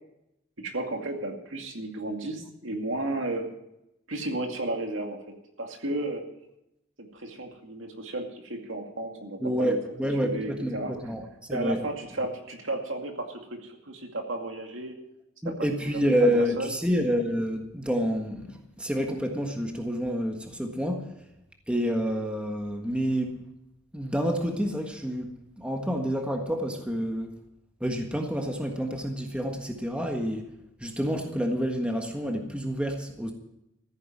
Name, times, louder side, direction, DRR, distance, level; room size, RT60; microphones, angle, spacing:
voice 1, 0.6-3.5 4.1-5.2 5.6-6.2 7.0-9.8 10.2-10.9 11.5-15.0 15.4-16.3 16.6-16.7, right 2 dB, 70° right, 3 dB, 2.4 m, -33 dB
voice 2, 9.4-11.2 11.5-11.8 15.4-18.5 18.8-21.1 21.7-23.4 23.9-25.3 25.6-27.3 27.8-30.5 30.8-33.3, equal, 5° right, 3 dB, 1.5 m, -28 dB
14.5 x 9.9 x 7.4 m, 0.84 s
head